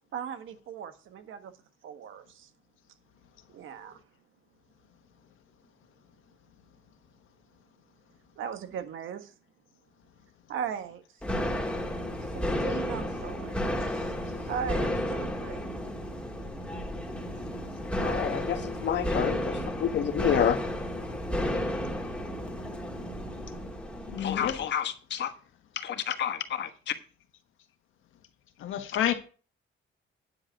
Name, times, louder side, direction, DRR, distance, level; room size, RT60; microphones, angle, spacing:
voice 1, 0.1-1.5 1.8-2.5 3.5-4.0 8.4-9.3 10.5-11.0 12.6-14.1 14.5-15.6, right 8 dB, 80° right, 1.5 m, -38 dB
sound 1, 11.2-24.7, equal, 5° left, 1.9 m, -32 dB
voice 2, 18.0-20.6 24.2-25.3 25.7-26.9, left 9 dB, 60° left, 1.3 m, -29 dB
voice 3, 24.1-24.6 28.6-29.1, left 10 dB, 85° left, 1.5 m, -29 dB
9.8 x 7.8 x 4.5 m
cardioid pair, 150°, 20 cm